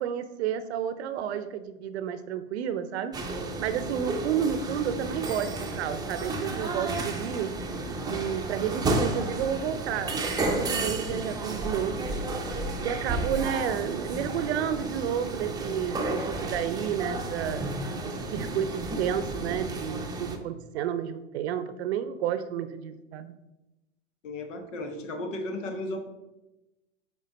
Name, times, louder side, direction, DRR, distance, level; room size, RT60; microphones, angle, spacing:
voice 1, 0.0-3.1 3.6-7.5 8.1-12.1 12.8-17.6 18.0-23.3, right 9 dB, 60° right, 12 dB, 0.6 m, -31 dB
sound 1, 3.1-20.4, right 2 dB, 10° right, 0.7 m, -32 dB
voice 2, 12.4-12.9 24.2-26.1, left 1 dB, 75° left, 6 dB, 1.3 m, -35 dB
6.8 x 4.5 x 4.0 m, 0.99 s
hypercardioid pair, 115°, 37 cm